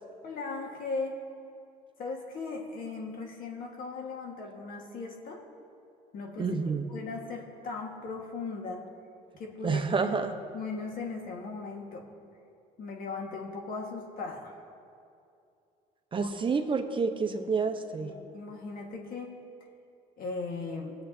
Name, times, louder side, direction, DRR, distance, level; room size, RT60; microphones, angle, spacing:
voice 1, 0.2-1.2 2.0-5.4 6.1-6.6 6.9-8.9 9.4-10.1 10.5-12.1 12.8-14.5 16.2-16.3 18.0-19.3 20.2-20.9, left 4 dB, 60° left, 1 dB, 1.6 m, -38 dB
voice 2, 6.4-6.9 9.6-10.4 16.1-18.1, right 4 dB, 30° right, 5 dB, 0.7 m, -29 dB
21.0 x 7.8 x 2.7 m, 2.6 s
cardioid pair, 110°, 17 cm